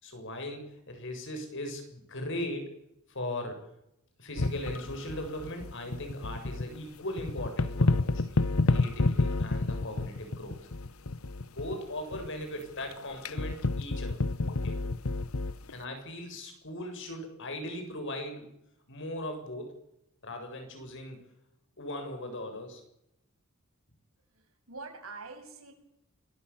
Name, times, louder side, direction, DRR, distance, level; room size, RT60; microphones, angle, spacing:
voice 1, 0.0-2.7 3.1-3.7 4.2-10.7 11.5-14.2 14.5-14.8 15.7-18.5 18.9-19.7 20.2-21.3 21.8-22.8, left 1 dB, 60° left, 5 dB, 7.5 m, -39 dB
sound 1, 4.4-6.8 7.2-11.8 12.1-12.3 12.8-15.7, left 2 dB, 85° left, 1.0 m, -29 dB
voice 2, 24.3-25.7, right 3 dB, 85° right, 5 dB, 7.4 m, -45 dB
27.0 x 22.5 x 7.3 m, 0.83 s
head